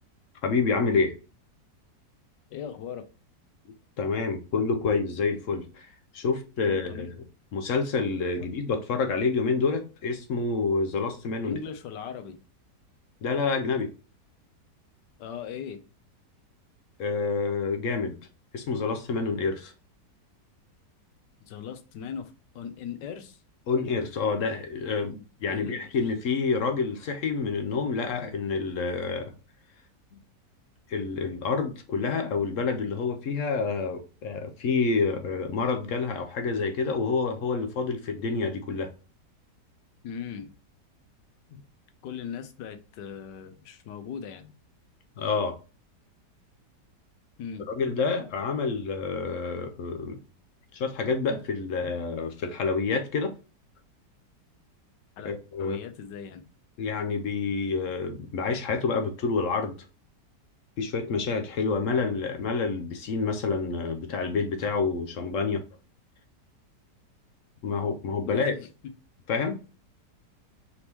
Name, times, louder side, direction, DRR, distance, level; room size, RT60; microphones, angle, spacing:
voice 1, 0.4-1.1 4.0-7.1 7.5-11.6 13.2-13.9 17.0-18.2 18.5-19.7 23.7-25.1 25.4-29.3 30.9-38.9 41.5-41.6 45.2-45.6 47.7-50.2 50.7-53.3 55.2-55.8 56.8-59.8 60.8-65.6 67.6-68.5 69.3-69.6, left 4 dB, 65° left, 5 dB, 0.8 m, -28 dB
voice 2, 2.5-3.0 6.6-7.1 8.4-8.5 11.4-12.4 15.2-15.8 21.4-23.4 25.0-25.9 40.0-40.5 42.0-44.5 47.4-47.7 55.2-55.3 55.6-56.4 68.2-68.7, left 7 dB, 85° left, 9 dB, 1.3 m, -39 dB
4.3 x 2.9 x 3.4 m, 0.32 s
omnidirectional pair, 1.8 m